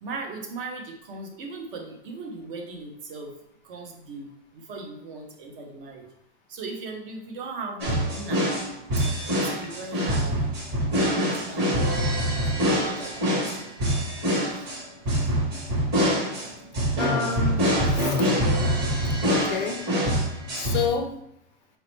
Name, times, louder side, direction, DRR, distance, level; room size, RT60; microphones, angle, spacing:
voice 1, 0.0-3.3 3.6-6.1 6.5-8.5 9.5-10.4 11.1-11.8 12.0-13.8 14.6-14.7 16.4-16.5 19.1-19.2, right 3 dB, 50° right, 2 dB, 0.9 m, -38 dB
sound 1, 7.8-20.9, equal, 30° right, 1.3 m, -25 dB
voice 2, 17.0-17.6 17.9-18.2 19.2-19.8 20.5-21.1, left 6 dB, 40° left, 4 dB, 0.4 m, -28 dB
4.2 x 2.8 x 3.1 m, 0.77 s
supercardioid pair, 155°, 34 cm